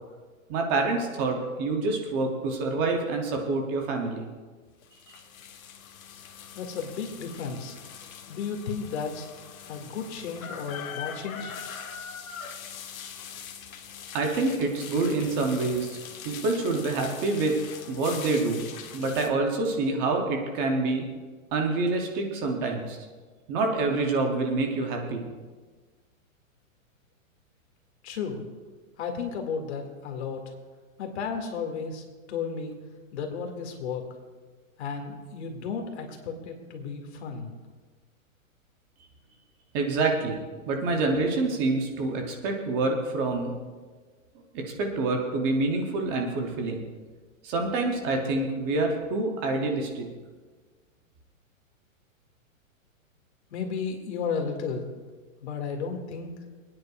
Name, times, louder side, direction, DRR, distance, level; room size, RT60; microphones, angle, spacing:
voice 1, 0.5-4.3 5.1-5.2 14.1-16.0 16.2-17.6 17.9-21.1 21.5-23.0 23.5-25.3 39.7-43.6 44.5-46.9 47.4-50.1, right 3 dB, 15° right, 2 dB, 0.5 m, -27 dB
sound 1, 4.8-19.3, left 7 dB, 75° left, 1.2 m, -42 dB
voice 2, 6.5-7.8 8.3-9.3 9.7-11.5 28.0-28.4 29.0-30.4 31.0-32.7 33.1-34.0 34.8-37.5 53.5-54.9 55.4-56.3, left 5 dB, 55° left, 3 dB, 2.0 m, -33 dB
27.5 x 9.6 x 2.3 m, 1.4 s
hypercardioid pair, 160°, 41 cm